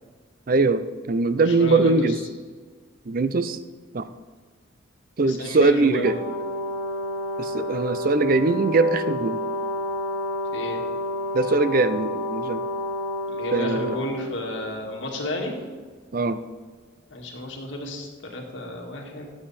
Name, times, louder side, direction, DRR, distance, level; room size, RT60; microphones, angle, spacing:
voice 1, 0.5-2.2 3.1-3.6 3.9-4.0 5.2-6.2 7.4-9.4 11.3-12.6 13.5-14.0 16.1-16.4, right 3 dB, 45° right, 12 dB, 0.5 m, -21 dB
voice 2, 1.4-2.0 5.2-6.1 10.5-10.8 13.3-15.6 17.1-19.3, left 2 dB, 60° left, 0 dB, 2.0 m, -32 dB
Brass instrument, 6.0-14.7, left 1 dB, 20° left, 2.2 m, -30 dB
12.5 x 8.2 x 4.2 m, 1.5 s
head